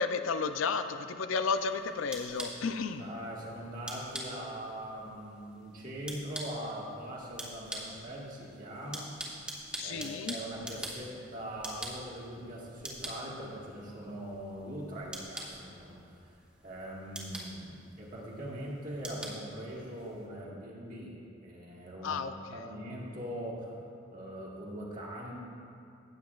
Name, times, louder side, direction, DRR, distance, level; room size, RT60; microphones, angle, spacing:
voice 1, 0.0-3.0 9.7-10.4 22.0-22.3, left 4 dB, 80° left, 9 dB, 0.5 m, -32 dB
sound 1, 1.5-20.3, right 1 dB, 5° right, 1.1 m, -46 dB
voice 2, 3.0-9.1 9.8-16.3 16.6-21.1 21.4-23.8 24.1-25.3, equal, 45° right, -4 dB, 1.7 m, -41 dB
15.0 x 8.7 x 2.4 m, 2.4 s
head